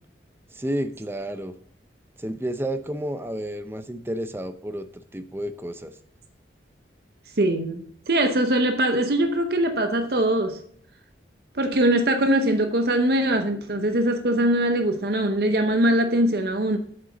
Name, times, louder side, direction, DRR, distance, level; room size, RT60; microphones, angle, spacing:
voice 1, 0.5-1.5 2.2-5.9, right 1 dB, 10° right, 0.5 m, -31 dB
voice 2, 7.4-10.6 11.5-16.8, right 1 dB, 55° right, 0.8 m, -22 dB
8.1 x 7.9 x 3.8 m
head